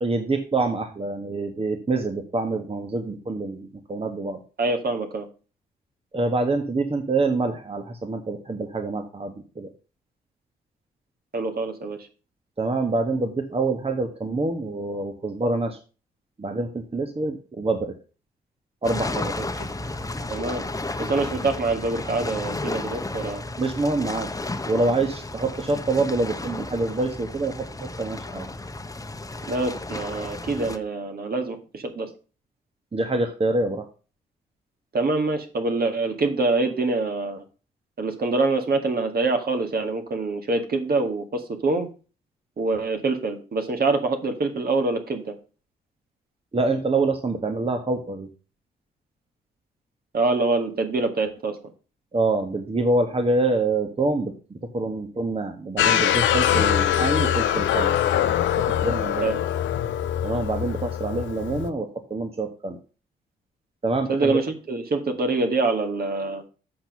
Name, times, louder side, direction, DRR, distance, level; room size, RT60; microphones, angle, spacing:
voice 1, 0.0-4.4 6.1-9.7 12.6-15.8 16.4-17.9 18.8-19.4 23.6-24.3 24.7-28.5 32.9-33.9 46.5-48.3 52.1-57.9 58.6-59.3 60.2-62.8 63.8-64.4, right 2 dB, 30° right, 6 dB, 1.5 m, -26 dB
voice 2, 4.6-5.3 11.3-12.0 19.4-19.5 20.3-20.6 21.0-23.4 29.5-32.1 34.9-37.4 38.0-41.9 42.6-45.3 50.1-51.6 59.2-59.4 64.1-66.4, right 3 dB, 50° right, 5 dB, 2.1 m, -25 dB
sound 1, 18.8-30.8, left 2 dB, 15° left, 1.1 m, -33 dB
sound 2, 55.8-61.7, left 10 dB, 70° left, 0.8 m, -23 dB
7.8 x 6.0 x 5.4 m, 0.35 s
hypercardioid pair, 40°, 20 cm